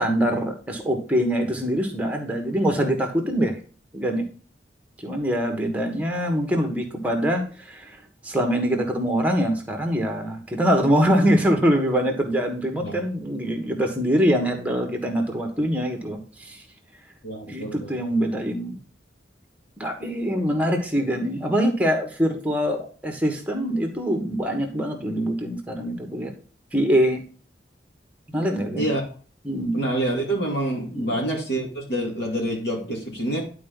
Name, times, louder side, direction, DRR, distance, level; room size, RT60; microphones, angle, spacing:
voice 1, 0.0-3.6 3.9-4.3 5.0-8.0 8.2-16.6 17.5-18.8 19.8-26.3 26.7-27.2 28.3-28.9 29.4-29.8 30.9-31.2, equal, 10° right, 3 dB, 1.6 m, -24 dB
voice 2, 17.2-18.0 28.8-29.0 29.7-33.4, right 1 dB, 65° left, -2 dB, 2.6 m, -27 dB
11.0 x 4.6 x 3.9 m, 0.38 s
head